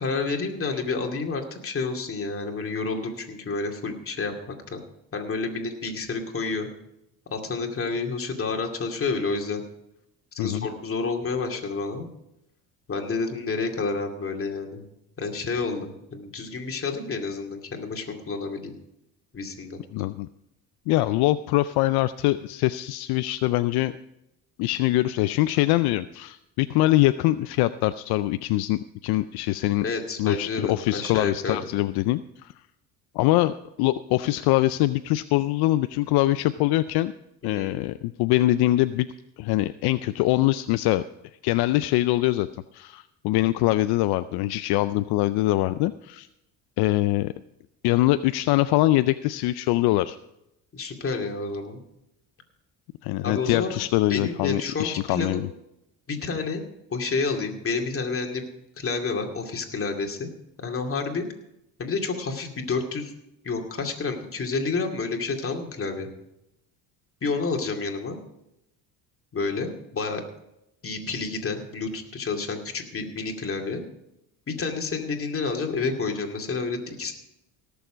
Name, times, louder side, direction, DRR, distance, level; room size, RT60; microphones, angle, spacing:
voice 1, 0.0-4.8 5.1-6.7 7.3-9.6 10.3-12.1 12.9-14.8 15.2-18.7 19.3-19.8 29.8-31.7 37.4-37.8 50.7-51.8 53.2-53.7 54.1-55.5 56.1-56.6 56.9-58.5 58.8-60.3 60.6-61.3 61.8-63.1 63.4-66.1 67.2-68.2 69.3-70.2 70.8-73.9 74.5-77.1, left 4 dB, 35° left, 3 dB, 2.4 m, -29 dB
voice 2, 19.9-20.3 20.9-23.9 24.6-29.8 30.2-32.5 33.1-37.1 37.4-39.1 39.4-41.0 41.4-42.5 42.7-46.3 46.8-47.3 47.8-50.2 53.0-55.5, left 16 dB, 70° left, 13 dB, 0.5 m, -23 dB
18.0 x 7.1 x 5.1 m, 0.84 s
supercardioid pair, 85°, 39 cm